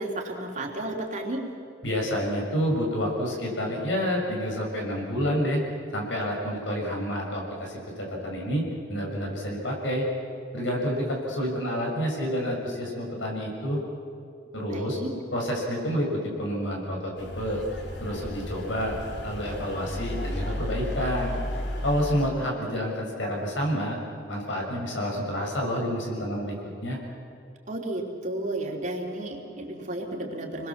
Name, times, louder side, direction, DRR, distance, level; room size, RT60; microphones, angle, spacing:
voice 1, 0.0-1.4 14.7-15.1 27.7-30.7, right 1 dB, 40° right, 0 dB, 3.3 m, -32 dB
voice 2, 1.8-5.6 5.9-10.0 10.5-13.8 14.5-15.0 15.3-17.6 18.0-19.0 19.2-21.4 21.8-23.9 24.3-26.5 26.8-27.0, equal, 80° left, -1 dB, 6.6 m, -29 dB
sound 1, 17.2-22.3, left 1 dB, 65° left, 3.5 m, -33 dB
28.0 x 21.0 x 7.3 m, 2.5 s
head